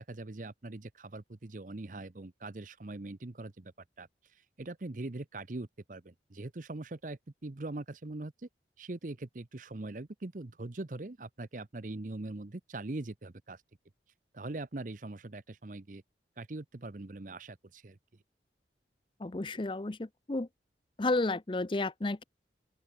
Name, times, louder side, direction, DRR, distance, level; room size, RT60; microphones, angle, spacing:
voice 1, 0.0-3.7 4.0-4.1 4.6-8.5 8.8-13.6 14.3-16.0 16.4-18.0, right 2 dB, 45° right, 0.8 m, -42 dB
voice 2, 19.2-20.5 21.0-22.2, left 2 dB, 30° left, 0.6 m, -32 dB
head